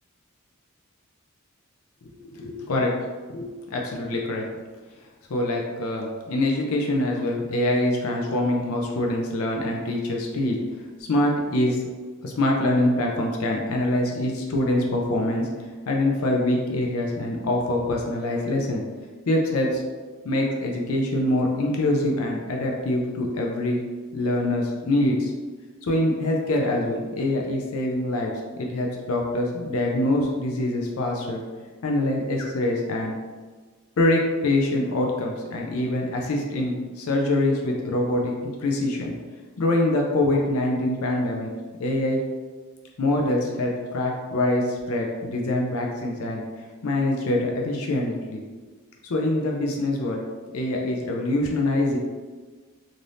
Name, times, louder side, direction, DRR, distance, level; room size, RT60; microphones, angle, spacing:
voice 1, 2.0-2.9 3.3-4.4 5.3-10.6 11.0-11.8 12.2-15.5 15.9-18.8 19.3-19.8 20.2-23.8 24.1-25.3 25.8-31.4 31.8-33.1 34.0-39.1 39.6-41.5 41.8-42.2 43.0-46.4 46.8-48.4 49.0-50.2 50.5-52.0, left 1 dB, 75° left, 0 dB, 0.5 m, -24 dB
2.6 x 2.5 x 3.3 m, 1.4 s
head